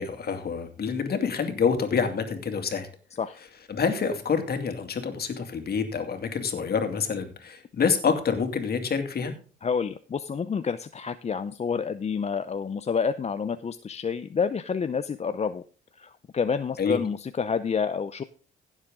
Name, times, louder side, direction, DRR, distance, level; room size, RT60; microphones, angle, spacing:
voice 1, 0.0-2.9 3.7-9.3 16.8-17.0, left 6 dB, 50° left, 7 dB, 2.5 m, -27 dB
voice 2, 9.6-15.6 16.0-18.2, left 6 dB, 35° left, 11 dB, 0.6 m, -28 dB
15.5 x 7.5 x 3.7 m, 0.39 s
cardioid pair, 90°, 20 cm